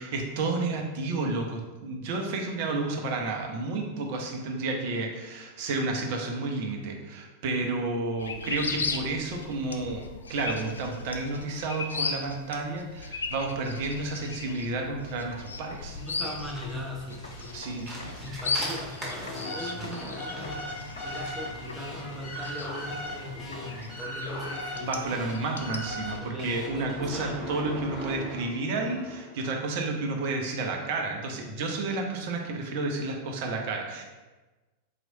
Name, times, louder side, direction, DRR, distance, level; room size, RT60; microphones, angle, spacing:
voice 1, 0.0-16.0 17.5-17.9 19.6-19.9 24.8-34.0, right 3 dB, 50° right, 3 dB, 0.6 m, -31 dB
voice 2, 2.7-3.1 15.9-17.9 18.2-25.1 25.4-25.6 26.2-27.4, left 1 dB, 5° right, -3 dB, 0.9 m, -40 dB
sound 1, 8.2-26.2, left 4 dB, 70° left, 0.3 m, -38 dB
sound 2, 15.7-24.0, right 1 dB, 25° right, 1.3 m, -43 dB
sound 3, 18.8-29.4, equal, 20° left, 1.2 m, -39 dB
4.0 x 3.0 x 2.7 m, 1.2 s
figure-of-eight pair, 90°, 0 cm